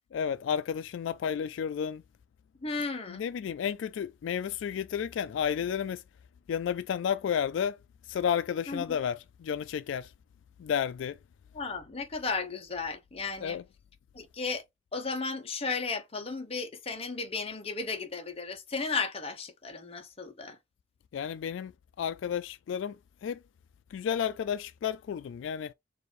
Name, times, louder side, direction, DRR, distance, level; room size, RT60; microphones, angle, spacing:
voice 1, 0.1-2.0 3.1-6.0 6.5-7.8 8.1-10.1 10.6-11.2 13.4-13.6 21.1-21.7 22.0-23.0 23.2-23.4 23.9-25.7, left 8 dB, 80° left, 0.3 m, -32 dB
voice 2, 2.6-3.2 8.7-9.0 11.5-13.6 14.1-14.6 14.9-20.6, left 4 dB, 30° left, 0.9 m, -34 dB
4.7 x 2.6 x 3.0 m
head